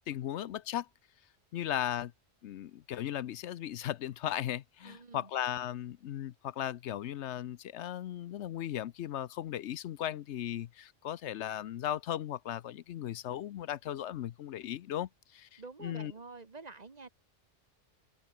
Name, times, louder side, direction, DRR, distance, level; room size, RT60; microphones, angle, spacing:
voice 1, 0.1-0.9 1.5-2.1 2.4-16.1, left 11 dB, 75° left, 0.9 m, -37 dB
voice 2, 4.8-5.3 15.6-17.1, right 4 dB, 35° right, 1.2 m, -48 dB
open air
omnidirectional pair, 1.2 m